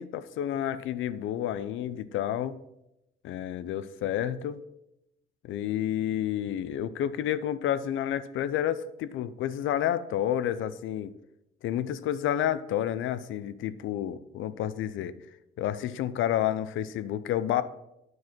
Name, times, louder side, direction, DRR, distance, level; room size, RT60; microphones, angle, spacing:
voice 1, 0.0-2.6 3.2-4.6 5.4-11.1 11.6-15.2 15.6-17.6, left 11 dB, 80° left, 15 dB, 0.6 m, -30 dB
9.5 x 4.7 x 6.0 m, 0.87 s
cardioid pair, 90°, 20 cm